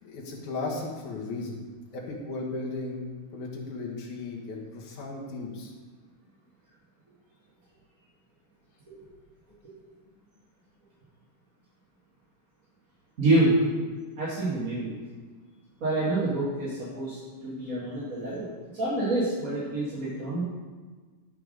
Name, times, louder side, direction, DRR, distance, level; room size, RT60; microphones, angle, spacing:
voice 1, 0.0-1.6 1.9-5.7, left 3 dB, 75° left, -2 dB, 2.9 m, -36 dB
voice 2, 13.2-13.5 14.2-14.9 15.8-18.5 18.7-20.4, right 2 dB, 35° right, -8 dB, 1.6 m, -27 dB
11.5 x 4.7 x 5.2 m, 1.4 s
omnidirectional pair, 3.5 m